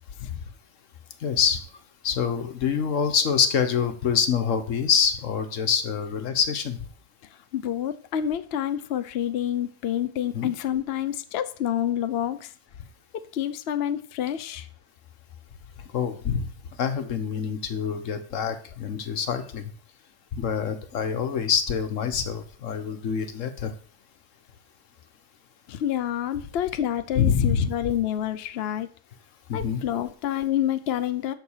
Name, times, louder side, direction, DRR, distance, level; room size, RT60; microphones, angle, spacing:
voice 1, 1.2-1.6 2.0-6.8 10.3-10.5 15.9-16.5 16.8-19.6 20.3-23.7 27.1-27.7 29.5-29.8, left 7 dB, 90° left, 8 dB, 1.4 m, -25 dB
voice 2, 7.5-12.5 13.1-14.7 25.7-28.9 29.5-31.3, left 10 dB, 60° left, 11 dB, 0.8 m, -28 dB
11.0 x 3.9 x 7.3 m, 0.43 s
omnidirectional pair, 1.3 m